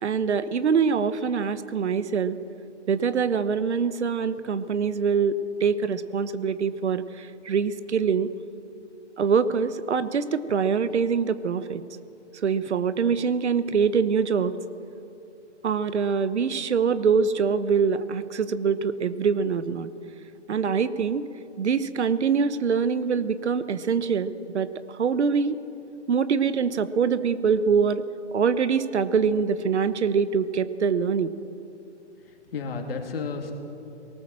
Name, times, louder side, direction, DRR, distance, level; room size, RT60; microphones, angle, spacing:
voice 1, 0.0-2.4 2.9-8.3 9.2-11.8 12.4-14.5 15.6-19.9 20.5-21.3 21.6-24.7 25.0-25.6 26.1-28.0 28.3-31.3, right 6 dB, 70° right, 13 dB, 1.1 m, -24 dB
voice 2, 32.1-33.5, left 5 dB, 50° left, 2 dB, 3.1 m, -33 dB
19.5 x 18.5 x 7.4 m, 2.7 s
hypercardioid pair, 155°, 36 cm